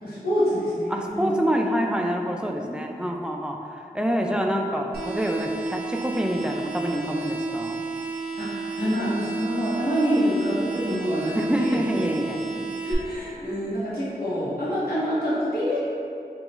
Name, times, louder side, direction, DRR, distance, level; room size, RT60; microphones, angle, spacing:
voice 1, 0.0-1.3 8.4-11.7 12.5-15.8, equal, 80° left, -12 dB, 1.5 m, -26 dB
voice 2, 0.9-7.8 11.3-12.4, equal, 5° right, 1 dB, 0.3 m, -26 dB
sound 1, 4.9-12.9, right 4 dB, 85° right, 0.6 m, -32 dB
3.7 x 2.9 x 3.0 m, 2.5 s
wide cardioid pair, 55°, 16 cm